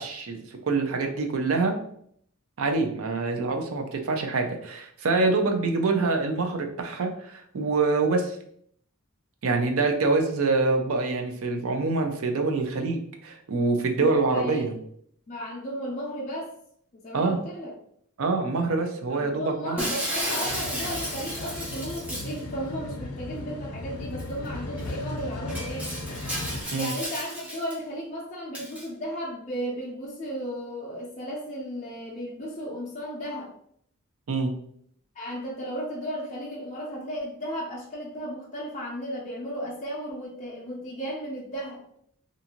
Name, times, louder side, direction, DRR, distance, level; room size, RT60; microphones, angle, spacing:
voice 1, 0.0-1.7 2.6-8.4 9.4-14.7 17.1-17.4 18.2-19.8 26.7-26.9 34.3-34.5, right 3 dB, 65° right, 4 dB, 0.5 m, -25 dB
voice 2, 13.9-14.6 15.3-16.5 16.9-17.7 19.1-25.9 26.7-33.5 35.1-41.8, equal, 35° left, -5 dB, 0.5 m, -34 dB
Shatter, 19.8-22.4 24.2-24.3 24.8-24.9 25.5-27.7 28.5-28.9, equal, 5° right, 0.7 m, -33 dB
sound 1, 20.4-26.6, left 2 dB, 80° left, 0.5 m, -36 dB
2.6 x 2.5 x 2.8 m, 0.67 s
head